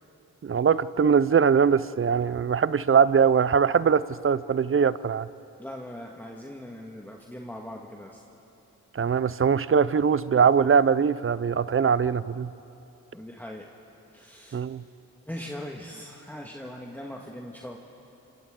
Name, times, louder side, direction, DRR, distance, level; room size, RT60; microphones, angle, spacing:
voice 1, 0.4-5.3 8.9-12.5 14.5-14.8, right 6 dB, 40° right, 17 dB, 0.6 m, -22 dB
voice 2, 5.6-8.2 13.1-13.6 14.1-14.6 15.3-17.8, left 1 dB, 5° left, -1 dB, 1.7 m, -40 dB
27.5 x 26.0 x 3.8 m, 3.0 s
cardioid pair, 55°, 35 cm